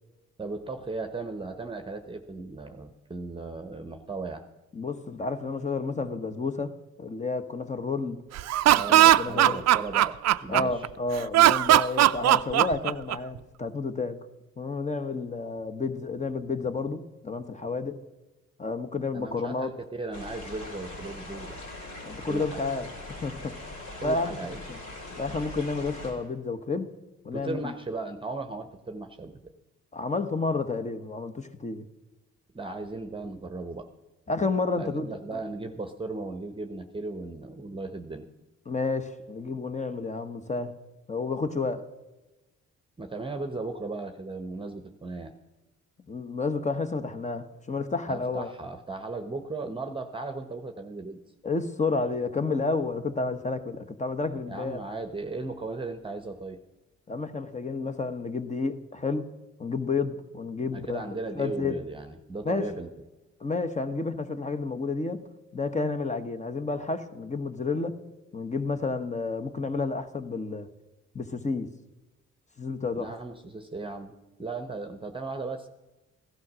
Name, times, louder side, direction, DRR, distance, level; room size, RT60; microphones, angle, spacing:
voice 1, 0.4-4.4 8.7-10.9 19.1-21.7 22.3-22.6 24.0-24.6 27.3-29.4 32.5-33.9 34.8-38.3 43.0-45.3 48.1-51.2 54.4-56.6 60.7-62.9 72.9-74.1 74.4-75.7, right 3 dB, 15° right, 1.0 m, -36 dB
voice 2, 4.7-8.2 8.9-9.6 10.5-14.2 14.6-18.0 18.6-19.8 22.0-22.9 23.2-23.6 24.0-24.4 24.7-24.8 25.2-26.9 27.2-27.7 29.9-31.9 34.3-35.4 38.6-40.8 41.1-41.9 46.1-48.5 51.4-54.8 57.1-59.3 59.6-61.8 62.4-62.7 63.4-65.3 65.5-68.0 68.3-70.7 71.1-71.7 72.6-73.2, left 3 dB, 25° left, 1.1 m, -30 dB
Laughter, 8.4-10.9 11.3-13.4, right 13 dB, 60° right, 0.5 m, -19 dB
sound 1, 20.1-26.1, left 2 dB, 80° left, 5.8 m, -41 dB
16.0 x 11.5 x 6.2 m
cardioid pair, 90°, 30 cm